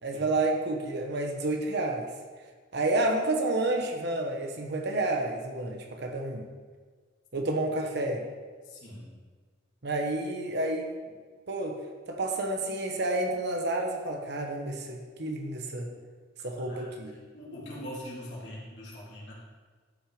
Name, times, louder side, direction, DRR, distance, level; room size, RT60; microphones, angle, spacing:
voice 1, 0.0-2.1 2.7-6.5 7.3-8.2 9.8-10.9 11.5-11.8 12.1-15.9 16.4-17.1, right 2 dB, 60° right, 3 dB, 1.2 m, -30 dB
voice 2, 8.6-9.1 16.7-16.9 17.3-19.3, equal, 65° left, -6 dB, 3.6 m, -42 dB
12.5 x 6.3 x 5.1 m, 1.5 s
head